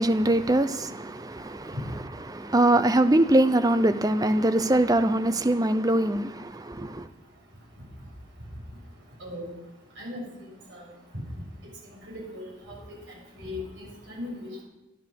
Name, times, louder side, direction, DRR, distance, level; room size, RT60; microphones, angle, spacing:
voice 1, 0.0-1.7 2.3-7.0, right 1 dB, 20° right, 0.6 m, -23 dB
voice 2, 11.8-12.7 13.4-14.6, left 2 dB, 65° right, 6.7 m, -38 dB
13.0 x 10.5 x 6.5 m
head